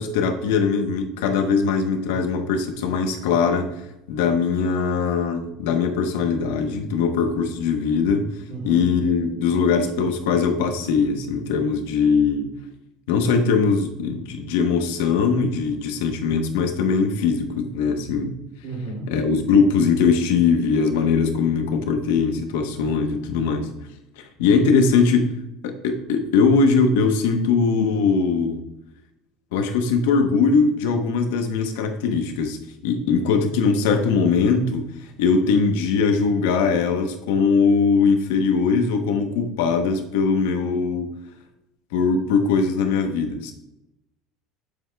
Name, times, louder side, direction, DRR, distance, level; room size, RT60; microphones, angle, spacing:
voice 1, 0.0-3.7 4.1-8.2 8.6-12.5 13.1-18.3 19.1-23.7 24.2-25.3 25.6-28.6 29.5-32.6 32.8-34.9 35.2-41.1 41.9-43.5, left 5 dB, 90° left, 6 dB, 1.0 m, -21 dB
voice 2, 8.5-8.8 18.6-19.1 33.2-33.3, right 2 dB, 55° right, -1 dB, 2.9 m, -32 dB
8.8 x 7.7 x 2.3 m, 0.87 s
cardioid pair, 165°, 0 cm